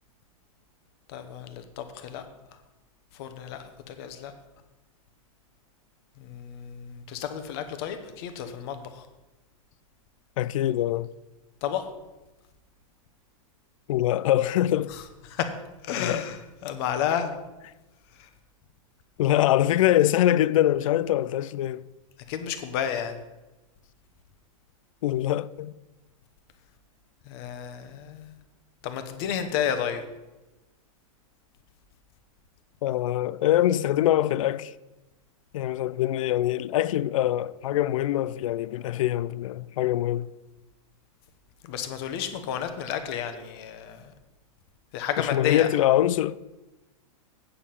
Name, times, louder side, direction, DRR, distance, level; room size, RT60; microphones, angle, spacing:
voice 1, 1.1-2.2 3.1-4.3 6.2-9.1 11.6-11.9 14.9-15.0 15.3-15.6 15.8-17.4 18.2-18.3 22.3-23.2 27.3-28.4 28.8-30.0 41.6-44.1 44.9-45.7, left 9 dB, 45° left, 1.1 m, -31 dB
voice 2, 10.4-11.1 13.9-14.9 16.0-16.3 17.1-17.2 19.2-21.9 25.0-25.7 32.8-34.7 35.5-40.3 45.2-46.4, left 13 dB, 65° left, 0.4 m, -24 dB
8.4 x 7.5 x 5.8 m
hypercardioid pair, 150°, 18 cm